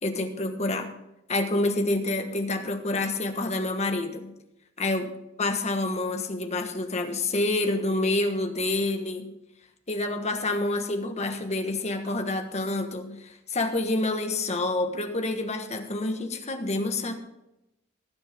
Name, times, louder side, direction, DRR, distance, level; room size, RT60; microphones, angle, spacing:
voice 1, 0.0-0.9 1.3-4.3 4.8-5.1 5.4-9.3 9.9-17.1, left 2 dB, 35° left, 6 dB, 1.3 m, -28 dB
19.0 x 7.9 x 3.5 m, 0.90 s
head